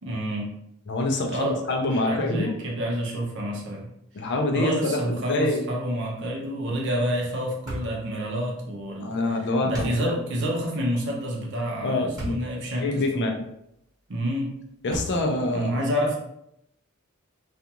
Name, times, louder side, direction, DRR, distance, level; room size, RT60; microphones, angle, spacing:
voice 1, 0.0-0.5 1.3-3.9 4.5-9.2 9.6-13.2 14.1-14.6 15.5-16.2, equal, 60° right, -1 dB, 0.7 m, -28 dB
voice 2, 0.9-2.5 4.1-5.6 9.0-10.1 11.8-12.4 12.8-13.4 14.8-15.7, left 2 dB, 55° left, 2 dB, 0.5 m, -26 dB
sound 1, 7.7-8.0 9.7-10.0 12.2-12.5 13.1-13.2 14.9-15.4, equal, 20° right, 1.1 m, -33 dB
2.5 x 2.3 x 2.8 m, 0.77 s
head